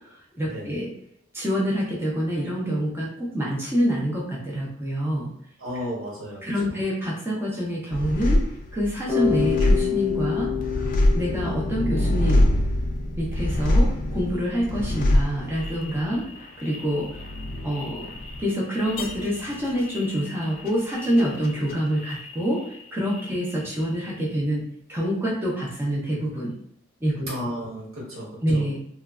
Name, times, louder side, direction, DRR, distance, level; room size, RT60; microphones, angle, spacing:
voice 1, 0.0-0.9 1.3-5.3 6.4-8.4 8.7-10.5 10.8-10.9 11.1-12.5 13.2-16.2 16.6-17.1 17.6-18.1 18.4-26.5 27.0-27.3 28.4-28.8, equal, 10° right, -5 dB, 0.5 m, -26 dB
voice 2, 5.6-6.4 6.7-6.9 27.3-28.7, equal, 90° right, -4 dB, 1.2 m, -34 dB
sound 1, 7.9-22.8 23.1-23.9, left 1 dB, 45° left, 0.3 m, -26 dB
Bass guitar, 9.1-13.0, left 11 dB, 20° left, 0.8 m, -29 dB
3.1 x 2.2 x 2.3 m, 0.71 s
head